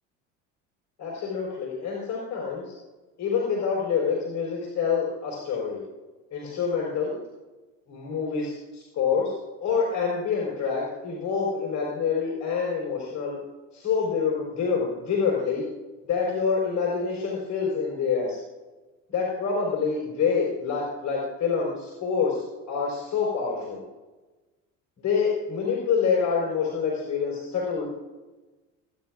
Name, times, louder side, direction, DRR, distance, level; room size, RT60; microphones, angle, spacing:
voice 1, 1.0-2.7 3.2-5.8 6.3-7.2 7.9-9.3 9.6-13.4 13.7-15.7 16.0-18.4 19.1-23.8 25.0-27.9, left 5 dB, 50° left, -3 dB, 4.6 m, -27 dB
24.5 x 10.5 x 2.4 m, 1.2 s
supercardioid pair, 80°, 38 cm